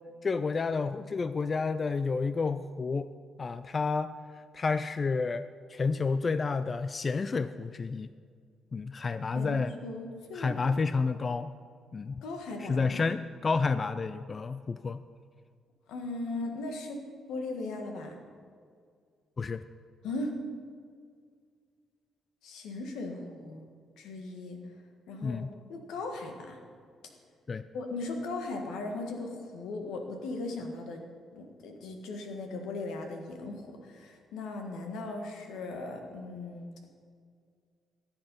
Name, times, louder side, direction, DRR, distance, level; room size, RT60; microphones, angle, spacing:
voice 1, 0.2-3.1 3.4-4.1 4.5-5.4 5.7-8.1 8.7-9.7 10.3-11.5 11.9-12.1 12.7-15.0 19.4-19.6 25.2-25.5 27.5-27.7, left 4 dB, 35° left, 12 dB, 0.4 m, -30 dB
voice 2, 9.3-10.7 12.2-13.0 15.9-17.0 17.3-18.2 20.0-20.4 22.4-23.6 24.0-24.6 25.1-25.4 25.7-26.6 27.7-31.0 31.3-36.9, left 2 dB, 85° left, 4 dB, 1.7 m, -38 dB
14.0 x 8.0 x 5.5 m, 2.1 s
cardioid pair, 90°, 0 cm